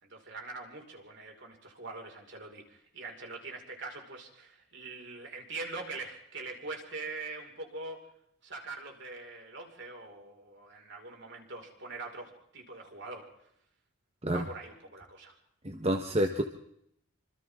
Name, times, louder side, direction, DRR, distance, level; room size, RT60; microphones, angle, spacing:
voice 1, 0.0-8.0 8.4-13.3 14.3-15.3, right 3 dB, 55° right, 2 dB, 5.4 m, -43 dB
voice 2, 15.6-16.4, right 1 dB, 30° right, 4 dB, 1.4 m, -28 dB
27.5 x 26.5 x 3.8 m, 0.74 s
head